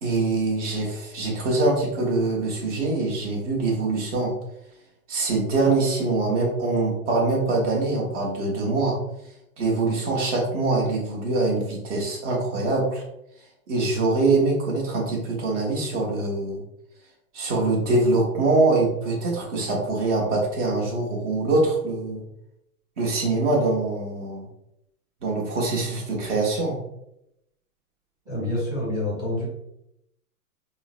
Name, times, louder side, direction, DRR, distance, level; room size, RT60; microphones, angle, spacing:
voice 1, 0.0-4.3 5.1-9.0 9.6-13.0 13.7-16.6 17.3-22.2 23.0-24.4 25.2-26.8, right 3 dB, 50° right, -2 dB, 1.2 m, -24 dB
voice 2, 28.3-29.5, left 1 dB, 10° right, -5 dB, 0.6 m, -27 dB
3.7 x 2.1 x 2.4 m, 0.81 s
hypercardioid pair, 130°, 45 cm